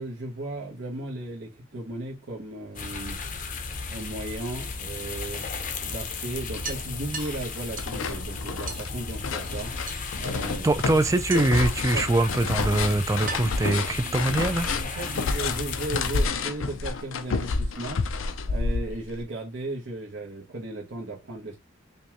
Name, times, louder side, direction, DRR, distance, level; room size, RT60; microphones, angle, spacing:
voice 1, 0.0-3.2 3.9-5.5 5.8-9.7 10.1-10.7 11.3-11.4 11.9-12.0 13.9-14.2 14.6-18.0 18.4-21.6, right 2 dB, 65° right, 1.0 m, -36 dB
sound 1, 2.6-3.7 5.1-5.2 5.6-5.7 6.0-6.1 6.6-8.0 8.7-8.9 9.9-10.4 11.3-11.7 12.5-12.6 13.3-14.6, right 4 dB, 45° right, 0.8 m, -39 dB
sound 2, 2.7-16.3, left 4 dB, 40° left, 0.6 m, -35 dB
sound 3, 6.1-6.2 6.6-7.3 7.5-19.2, left 4 dB, 80° left, 0.5 m, -30 dB
voice 2, 10.6-15.1, right 2 dB, 15° right, 0.3 m, -24 dB
5.3 x 2.3 x 2.9 m
head